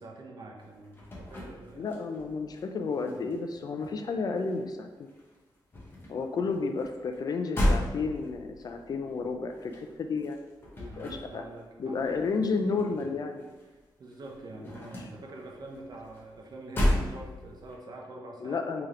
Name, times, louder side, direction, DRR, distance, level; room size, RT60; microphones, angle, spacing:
voice 1, 0.0-1.9 3.1-3.2 10.8-12.2 12.9-13.1 13.7-18.6, right 2 dB, 55° right, 0 dB, 0.7 m, -45 dB
sound 1, 0.6-2.6 2.9-4.8 5.1-13.8 14.0-17.8, left 1 dB, 25° left, 1.0 m, -34 dB
voice 2, 1.8-4.9 6.1-10.4 10.8-11.4 11.8-13.4 18.4-18.9, left 4 dB, 50° left, 5 dB, 0.3 m, -32 dB
3.3 x 2.8 x 3.6 m, 1.2 s
wide cardioid pair, 140°, 8 cm